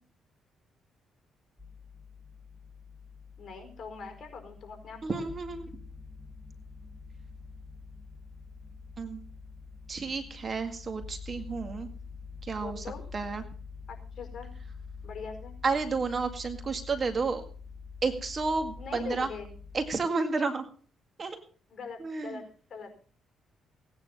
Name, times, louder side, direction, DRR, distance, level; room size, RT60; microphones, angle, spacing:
sound 1, 1.6-20.0, left 5 dB, 10° left, 1.9 m, -46 dB
voice 1, 3.4-5.3 12.6-13.0 13.9-14.5 15.0-15.5 18.8-19.5 21.7-22.9, left 5 dB, 45° left, 5 dB, 4.8 m, -42 dB
voice 2, 5.0-5.7 9.0-9.2 9.9-11.9 12.4-12.9 13.1-13.4 15.6-17.4 18.0-19.3 19.7-20.7 21.2-21.4 22.0-22.4, right 4 dB, 40° right, 8 dB, 2.0 m, -31 dB
17.5 x 9.7 x 5.5 m, 0.42 s
cardioid pair, 90°, 0 cm